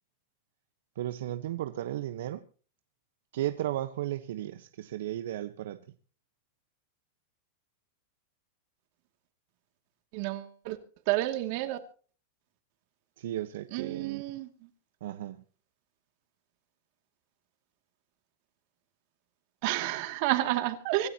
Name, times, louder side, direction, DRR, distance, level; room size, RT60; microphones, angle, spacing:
voice 1, 0.9-2.5 3.3-5.8 13.2-14.2 15.0-15.4, right 13 dB, 75° right, 1.1 m, -35 dB
voice 2, 10.1-10.8 11.1-11.8 13.7-14.5 19.6-21.1, right 16 dB, 50° right, 2.4 m, -30 dB
26.0 x 12.5 x 2.9 m
supercardioid pair, 145°, 0 cm